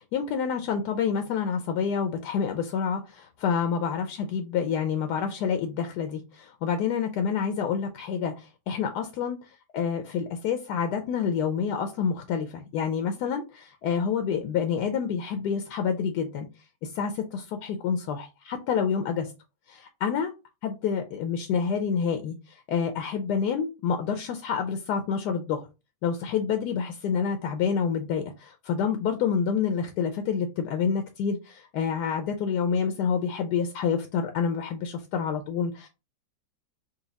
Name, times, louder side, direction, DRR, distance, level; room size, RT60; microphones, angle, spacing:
voice 1, 0.0-9.4 9.7-16.5 16.8-19.3 19.7-20.3 20.6-25.7 26.0-35.9, left 6 dB, 75° left, 6 dB, 1.1 m, -28 dB
4.1 x 2.3 x 3.9 m, 0.28 s
omnidirectional pair, 2.0 m